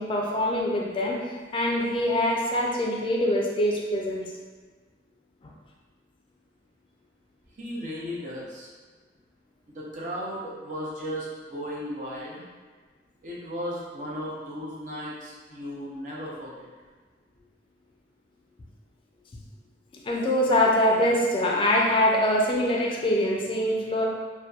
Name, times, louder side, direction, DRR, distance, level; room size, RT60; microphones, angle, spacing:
voice 1, 0.0-4.2 5.4-5.5 20.0-24.0, left 1 dB, 30° left, -2 dB, 0.4 m, -24 dB
voice 2, 7.5-8.7 9.7-12.4 13.2-16.7, equal, 45° right, -5 dB, 0.6 m, -35 dB
2.7 x 2.1 x 2.3 m, 1.4 s
head